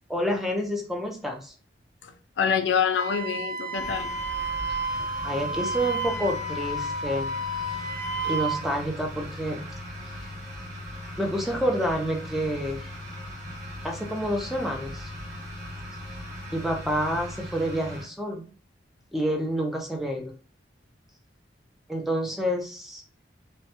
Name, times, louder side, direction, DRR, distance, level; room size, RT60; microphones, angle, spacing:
voice 1, 0.1-1.5 5.2-7.4 7.7-7.9 8.2-9.6 10.2-10.3 11.2-12.9 13.8-15.1 16.5-18.4 19.1-20.3 21.9-23.0, equal, ahead, 0.3 m, -28 dB
voice 2, 2.0-4.1, left 7 dB, 75° left, 0.3 m, -26 dB
Wind instrument woodwind instrument, 3.0-8.6, right 2 dB, 90° right, 1.0 m, -31 dB
sound 1, 3.7-18.0, left 1 dB, 50° right, 1.1 m, -39 dB
2.1 x 2.1 x 2.8 m
head